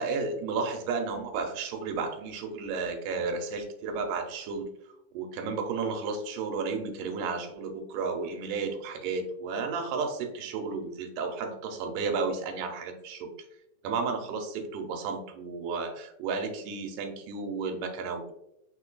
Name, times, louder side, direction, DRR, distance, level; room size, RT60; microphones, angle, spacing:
voice 1, 0.0-4.7 5.1-13.3 13.8-18.3, right 4 dB, 85° right, 5 dB, 2.2 m, -32 dB
5.0 x 3.8 x 2.2 m, 0.80 s
omnidirectional pair, 3.8 m